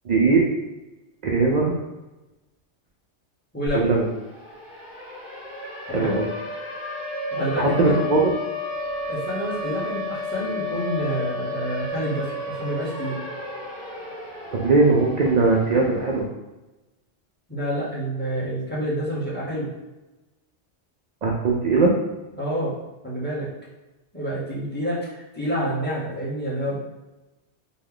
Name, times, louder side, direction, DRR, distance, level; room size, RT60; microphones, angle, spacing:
voice 1, 0.1-0.4 1.2-1.8 3.7-4.1 5.9-6.3 7.6-8.3 14.5-16.3 21.2-22.0, right 3 dB, 65° right, -2 dB, 0.4 m, -20 dB
voice 2, 3.5-3.9 5.9-6.2 7.3-8.0 9.1-13.2 17.5-19.7 22.4-22.7 23.0-23.5 24.1-26.8, equal, 10° left, -7 dB, 0.8 m, -28 dB
Siren, 3.7-3.8 4.1-16.1, left 2 dB, 50° left, 1.0 m, -32 dB
3.0 x 2.2 x 3.8 m, 1.1 s
omnidirectional pair, 1.2 m